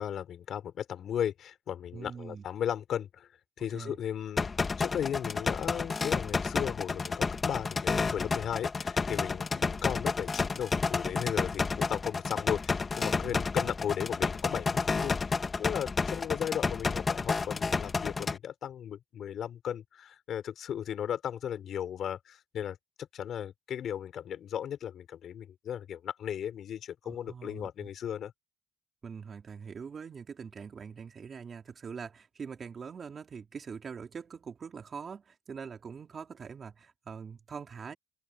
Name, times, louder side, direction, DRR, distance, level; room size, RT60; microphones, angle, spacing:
voice 1, 0.0-3.3 3.6-4.5 4.8-28.3, left 9 dB, 70° left, 4.2 m, -36 dB
voice 2, 1.9-2.4 3.7-4.0 13.2-13.7 27.0-27.9 29.0-37.9, right 6 dB, 45° right, 3.8 m, -43 dB
sound 1, 4.4-18.4, left 4 dB, 35° left, 1.9 m, -31 dB
open air
cardioid pair, 90°, 0 cm